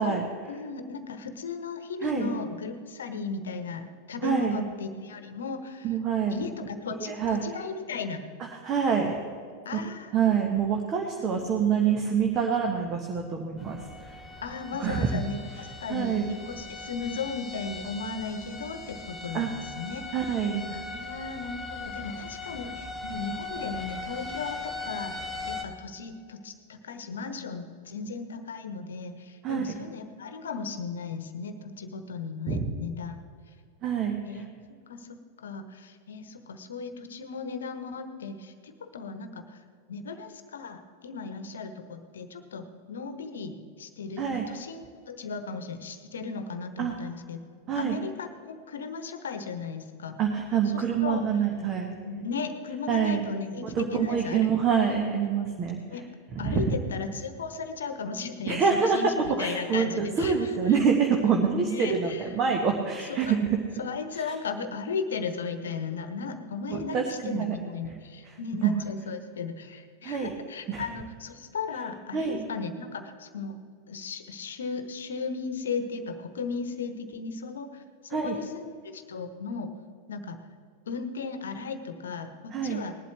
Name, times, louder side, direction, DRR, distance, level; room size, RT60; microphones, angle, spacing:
voice 1, 0.0-5.9 6.3-8.3 9.6-10.2 11.2-11.4 14.4-20.0 20.7-25.1 25.5-33.1 34.3-34.5 34.9-39.6 39.9-47.4 47.7-50.2 50.7-51.2 52.0-54.5 55.9-56.0 56.4-60.8 61.6-62.3 63.1-63.3 63.8-73.5 73.9-79.7 80.1-80.4 80.9-83.0, left 4 dB, 65° left, 9 dB, 1.0 m, -36 dB
voice 2, 4.2-4.6 5.8-6.4 7.0-7.4 8.6-9.2 9.7-9.8 10.1-14.2 14.8-15.2 15.9-16.3 19.3-19.5 20.1-20.7 29.4-29.6 32.5-32.6 33.8-34.4 44.2-44.4 46.8-46.9 47.7-48.0 50.2-52.0 52.9-53.2 53.6-55.8 56.3-56.8 58.5-59.1 59.4-63.6 66.7-67.5 68.6-68.8 70.0-70.3 70.7-70.8 72.1-72.5 78.1-78.4 82.5-82.8, right 6 dB, 30° right, 2 dB, 1.2 m, -26 dB
sound 1, 13.6-25.6, left 3 dB, 5° left, 1.7 m, -39 dB
19.5 x 11.5 x 3.4 m, 2.2 s
figure-of-eight pair, 90°, 0 cm